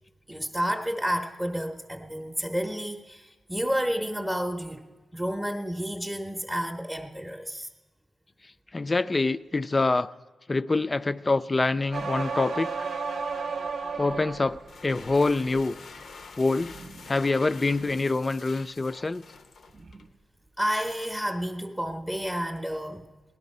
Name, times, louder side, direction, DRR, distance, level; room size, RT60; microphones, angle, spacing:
voice 1, 0.3-4.9 5.1-7.7 20.6-23.0, equal, 10° right, 3 dB, 0.7 m, -30 dB
voice 2, 8.7-10.1 10.5-12.7 14.0-15.8 16.4-16.8 17.1-19.2, left 3 dB, 30° left, 14 dB, 0.3 m, -25 dB
sound 1, 11.9-14.6 15.1-15.6, right 4 dB, 85° right, 0.8 m, -32 dB
sound 2, 14.5-20.1, left 4 dB, 80° left, 0.7 m, -47 dB
sound 3, 15.7-20.6, right 3 dB, 50° right, 0.7 m, -51 dB
17.5 x 11.0 x 5.3 m, 1.2 s
wide cardioid pair, 105°, 0 cm